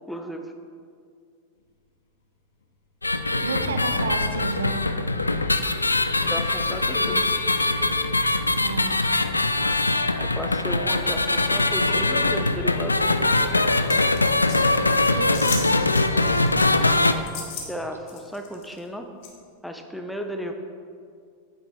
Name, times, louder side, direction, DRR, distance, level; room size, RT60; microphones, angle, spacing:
voice 1, 0.1-0.4 6.3-7.3 10.2-13.7 17.7-19.1 19.6-20.5, equal, ahead, 4 dB, 0.7 m, -34 dB
sound 1, 3.0-17.1, left 2 dB, 80° left, 0.3 m, -22 dB
sound 2, 3.2-8.5 10.8-16.4, left 3 dB, 65° left, 0.9 m, -38 dB
voice 2, 3.4-5.0 8.6-9.2 15.1-15.9, right 4 dB, 70° right, 8 dB, 0.5 m, -31 dB
sound 3, 13.9-14.6 15.3-15.7 15.9-16.7 17.3-17.7 18.1-18.8 19.2-19.3, left 5 dB, 50° left, 1.3 m, -35 dB
9.3 x 7.4 x 3.7 m, 2.2 s
figure-of-eight pair, 90°, 0 cm